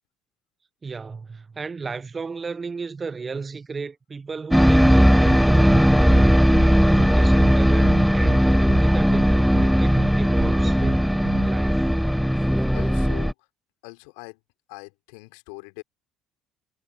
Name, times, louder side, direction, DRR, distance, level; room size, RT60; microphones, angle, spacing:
voice 1, 0.8-8.5 8.8-11.9, right 4 dB, 30° right, 1.3 m, -35 dB
sound 1, 4.5-13.3, equal, ahead, 0.5 m, -18 dB
sound 2, 5.7-5.8 6.1-6.2 6.5-6.7 7.0-7.1 7.4-7.5 7.8-8.4 8.7-8.8 9.1-9.2 9.5-9.7 10.0-10.1 10.4-10.5 10.8-10.9 11.2-11.5, right 11 dB, 85° right, 2.3 m, -36 dB
voice 2, 12.7-13.5 13.8-14.4 14.7-15.8, left 33 dB, 75° left, 4.2 m, -42 dB
hypercardioid pair, 55°, 0 cm